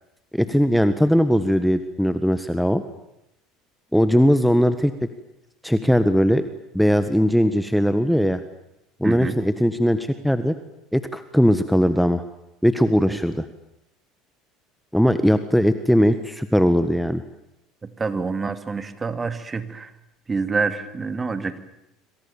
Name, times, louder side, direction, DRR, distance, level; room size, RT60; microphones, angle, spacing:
voice 1, 0.3-2.8 3.9-4.9 5.6-6.5 6.7-8.4 9.0-10.5 10.9-12.2 12.6-13.4 14.9-17.2, equal, ahead, 10 dB, 1.5 m, -19 dB
voice 2, 9.0-9.4 13.1-13.2 18.0-19.9 20.3-21.6, right 4 dB, 25° right, 10 dB, 2.5 m, -27 dB
26.5 x 25.5 x 7.2 m, 0.85 s
hypercardioid pair, 80°, 0 cm